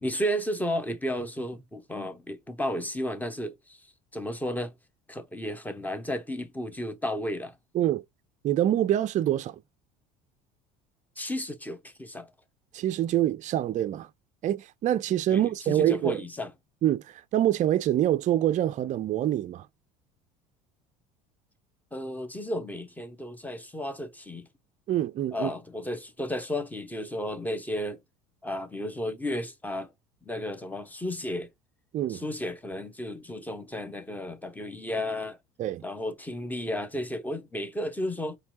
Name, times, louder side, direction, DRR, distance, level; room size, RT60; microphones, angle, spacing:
voice 1, 0.0-4.7 5.1-7.6 11.2-12.3 15.3-16.5 21.9-24.5 25.3-28.0 28.4-29.9 30.2-31.5 32.1-35.4 35.8-38.4, left 1 dB, 10° left, 1.1 m, -33 dB
voice 2, 8.4-9.6 12.7-14.1 14.4-16.2 16.8-19.7 24.9-25.5 31.9-32.2 35.6-35.8, right 12 dB, 40° right, 0.5 m, -25 dB
4.3 x 3.2 x 2.7 m
hypercardioid pair, 75°, 19 cm